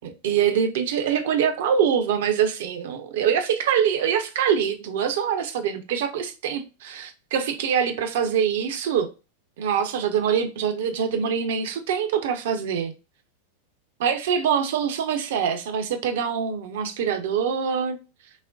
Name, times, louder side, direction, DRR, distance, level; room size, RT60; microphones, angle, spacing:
voice 1, 0.0-9.1 9.6-12.9 14.0-18.0, right 8 dB, 55° right, 0.7 m, -24 dB
6.2 x 2.1 x 2.5 m
figure-of-eight pair, 90°, 0 cm